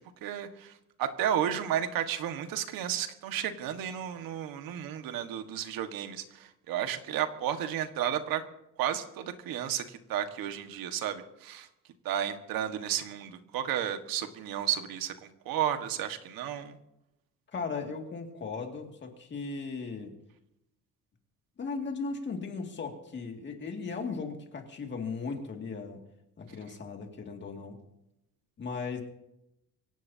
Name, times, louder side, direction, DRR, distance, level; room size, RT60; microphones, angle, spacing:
voice 1, 0.2-0.7 1.0-8.4 8.8-11.7 12.0-15.1 15.4-16.8, right 10 dB, 85° right, 7 dB, 1.7 m, -32 dB
voice 2, 17.5-20.1 21.6-26.0 26.4-27.8 28.6-29.0, left 4 dB, 30° left, 3 dB, 2.3 m, -37 dB
24.5 x 17.5 x 2.8 m, 0.84 s
cardioid pair, 180°, 34 cm